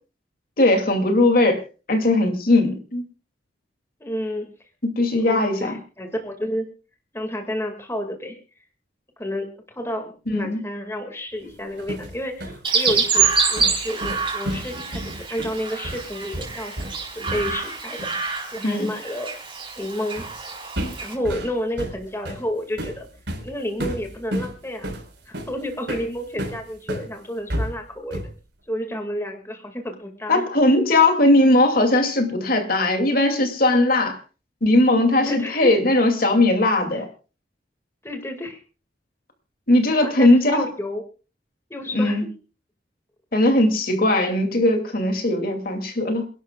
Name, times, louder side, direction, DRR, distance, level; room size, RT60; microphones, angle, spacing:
voice 1, 0.6-1.6 1.9-3.0 4.8-5.7 10.3-10.6 18.6-18.9 30.3-34.2 34.6-37.1 39.7-40.6 41.9-42.2 43.3-46.2, left 2 dB, 55° left, 2.5 m, -19 dB
voice 2, 4.0-4.5 5.2-6.7 7.1-8.4 9.2-9.5 9.8-18.1 18.5-19.3 19.8-20.2 21.0-23.1 23.4-24.9 25.3-28.2 28.7-30.5 35.1-35.8 36.9-37.0 38.0-38.6 39.9-41.0 41.7-42.2, equal, 15° left, 2.1 m, -30 dB
sound 1, 11.5-17.7 18.0-18.2 20.2-20.4 20.8-27.1 27.5-28.4, equal, 75° right, 4.5 m, -32 dB
Chirp tweet, 12.6-21.1, right 5 dB, 30° right, 4.1 m, -26 dB
28.5 x 12.0 x 2.4 m
head